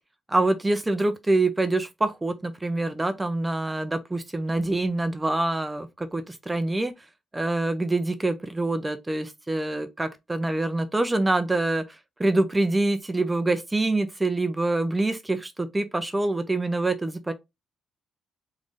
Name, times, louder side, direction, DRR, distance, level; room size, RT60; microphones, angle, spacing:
voice 1, 0.3-6.9 7.3-17.3, right 2 dB, 15° right, 0.5 m, -25 dB
3.6 x 3.2 x 2.5 m
cardioid pair, 90°, 0 cm